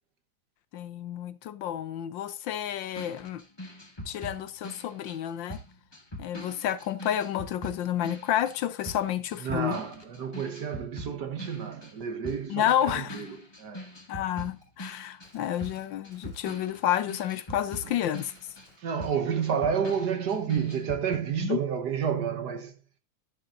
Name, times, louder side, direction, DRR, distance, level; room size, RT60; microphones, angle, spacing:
voice 1, 0.7-3.4 4.1-5.6 6.2-9.8 12.5-13.2 14.1-18.3 21.4-21.6, left 11 dB, 70° left, 1.3 m, -30 dB
sound 1, 2.9-12.0 12.2-21.2, equal, 15° left, 1.6 m, -43 dB
voice 2, 9.4-13.9 18.8-22.7, right 7 dB, 55° right, 1.6 m, -30 dB
Gunshot gunfire, 14.6-14.7 15.2-16.5 16.9-17.1 17.7-18.8, left 1 dB, 25° right, 5.6 m, -60 dB
10.5 x 10.5 x 2.5 m
omnidirectional pair, 2.2 m